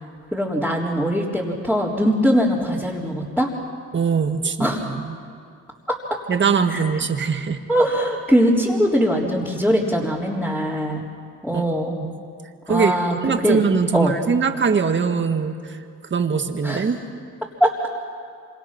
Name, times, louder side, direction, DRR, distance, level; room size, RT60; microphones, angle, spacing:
voice 1, 0.3-3.5 4.6-4.9 5.9-6.0 6.7-6.8 7.7-11.0 11.4-12.0 12.7-13.6 13.9-14.1 16.6-16.8 17.6-17.7, equal, 5° left, -6 dB, 3.7 m, -21 dB
voice 2, 3.9-5.2 6.3-7.6 11.5-12.2 12.7-13.0 13.2-15.8 16.1-17.0, right 5 dB, 40° right, 6 dB, 1.9 m, -22 dB
27.0 x 25.5 x 6.0 m, 2.4 s
cardioid pair, 90°, 30 cm